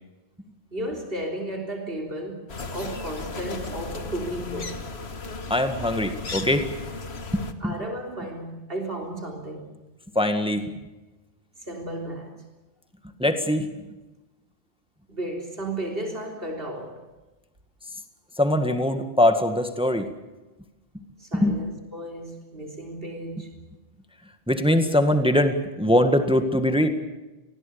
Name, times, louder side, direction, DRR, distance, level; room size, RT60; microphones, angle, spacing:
voice 1, 0.7-4.9 7.6-9.7 11.6-12.4 15.1-17.0 21.2-23.5, right 1 dB, 60° right, 2 dB, 3.9 m, -34 dB
sound 1, 2.5-7.5, left 4 dB, 75° left, 1.8 m, -35 dB
voice 2, 5.5-6.7 7.3-7.7 10.2-10.7 13.2-13.7 18.4-20.1 20.9-21.0 21.3-21.6 24.5-26.9, left 1 dB, 5° right, 7 dB, 1.8 m, -22 dB
28.0 x 20.5 x 7.0 m, 1.1 s
omnidirectional pair, 1.1 m